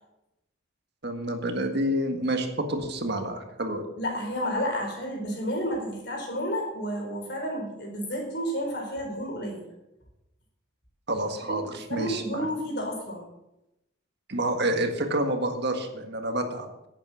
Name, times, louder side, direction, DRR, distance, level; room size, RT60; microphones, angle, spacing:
voice 1, 1.0-3.9 11.1-12.5 14.3-16.7, right 1 dB, 55° right, 5 dB, 1.7 m, -28 dB
voice 2, 4.0-9.6 11.5-13.2, equal, 55° left, 1 dB, 4.5 m, -31 dB
11.0 x 8.7 x 7.0 m, 0.88 s
head